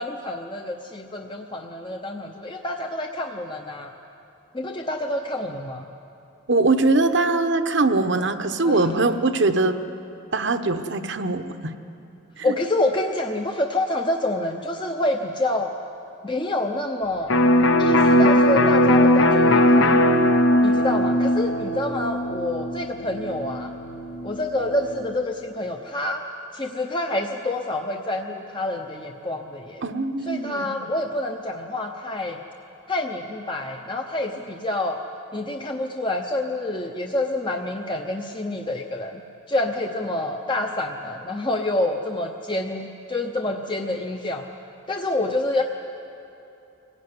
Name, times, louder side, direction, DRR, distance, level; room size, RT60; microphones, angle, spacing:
voice 1, 0.0-3.9 4.5-5.9 8.6-9.1 12.4-15.7 16.2-17.3 17.8-20.0 20.6-23.7 24.2-26.2 26.5-29.8 30.3-32.4 32.9-35.0 35.3-39.2 39.5-44.4 44.9-45.6, left 1 dB, 25° left, 2 dB, 0.8 m, -27 dB
voice 2, 6.5-9.8 10.3-11.8 12.4-12.5 29.8-30.8, right 3 dB, 60° right, 8 dB, 1.0 m, -22 dB
Electric guitar, 17.3-24.9, left 1 dB, 65° left, 1.0 m, -19 dB
24.5 x 16.0 x 9.6 m, 2.9 s
head